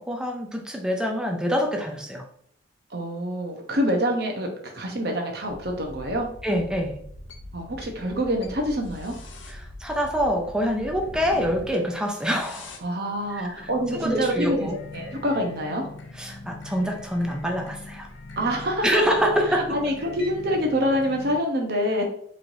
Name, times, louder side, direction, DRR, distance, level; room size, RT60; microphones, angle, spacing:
voice 1, 0.0-2.2 6.4-7.0 9.5-12.8 13.3-13.5 13.9-14.7 16.2-18.1 18.8-19.8, equal, 5° right, 1 dB, 0.5 m, -26 dB
voice 2, 2.9-6.3 7.5-9.2 12.8-15.9 18.4-19.0 19.5-22.0, equal, 55° right, 2 dB, 0.8 m, -26 dB
sound 1, 5.5-21.4, left 2 dB, 70° left, 0.6 m, -42 dB
4.4 x 3.1 x 2.6 m, 0.66 s
head